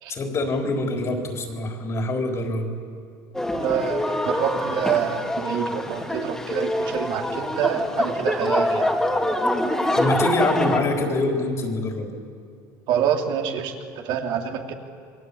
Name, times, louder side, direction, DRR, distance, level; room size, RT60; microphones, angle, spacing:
voice 1, 0.1-2.7 10.0-12.1, left 2 dB, 35° left, 2 dB, 4.1 m, -25 dB
sound 1, 3.3-10.8, left 1 dB, 5° left, 2.8 m, -25 dB
voice 2, 3.5-8.9 12.9-14.7, right 8 dB, 65° right, 2 dB, 2.8 m, -26 dB
28.0 x 23.0 x 8.6 m, 2.2 s
cardioid pair, 145°, 9 cm